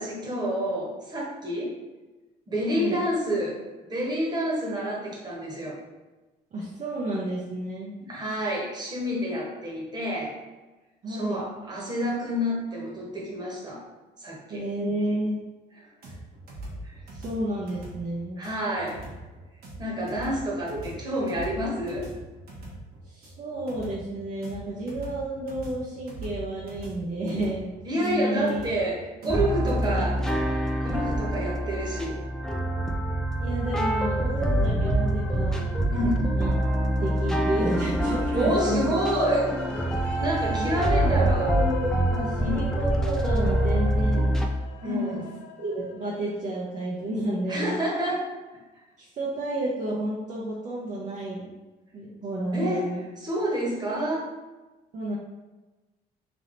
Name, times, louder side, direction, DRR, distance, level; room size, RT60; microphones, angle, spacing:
voice 1, 0.0-1.8 2.5-3.6 3.9-5.8 8.0-10.4 11.1-13.9 14.2-14.6 16.8-16.9 18.4-19.0 19.8-22.1 27.8-30.2 30.8-32.2 35.9-36.3 38.3-39.5 40.2-41.5 42.4-42.7 44.8-45.3 47.5-48.3 52.5-52.9 53.2-54.3, equal, 25° right, -3 dB, 1.3 m, -28 dB
voice 2, 2.7-3.0 6.5-7.9 11.0-11.5 14.5-15.3 17.2-18.4 20.7-20.8 23.1-27.7 27.9-28.6 29.2-29.3 29.6-30.1 33.4-35.7 36.3-36.5 36.9-39.0 40.5-44.3 44.8-45.2 45.6-47.8 49.0-51.5 51.9-53.1 54.9-55.2, right 1 dB, 45° right, -6 dB, 0.8 m, -31 dB
sound 1, 16.0-30.4, right 1 dB, 65° right, 1.3 m, -42 dB
sound 2, 29.3-44.5, right 1 dB, 5° left, 0.4 m, -25 dB
sound 3, 38.0-46.5, left 6 dB, 85° left, 0.4 m, -38 dB
3.4 x 2.8 x 3.9 m, 1.2 s
cardioid pair, 110°, 17 cm